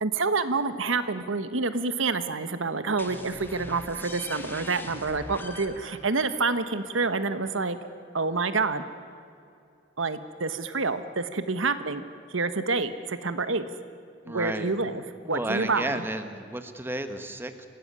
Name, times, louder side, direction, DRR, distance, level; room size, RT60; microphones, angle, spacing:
voice 1, 0.0-7.8 8.1-8.8 10.0-12.0 12.3-13.6 14.2-15.0 15.3-16.0, right 3 dB, 85° right, 11 dB, 1.3 m, -28 dB
sound 1, 3.0-8.4, left 1 dB, 10° left, 1.6 m, -44 dB
voice 2, 4.5-5.1 14.2-14.7 15.2-17.7, right 1 dB, 10° right, 8 dB, 1.3 m, -33 dB
26.0 x 16.5 x 9.7 m, 2.4 s
head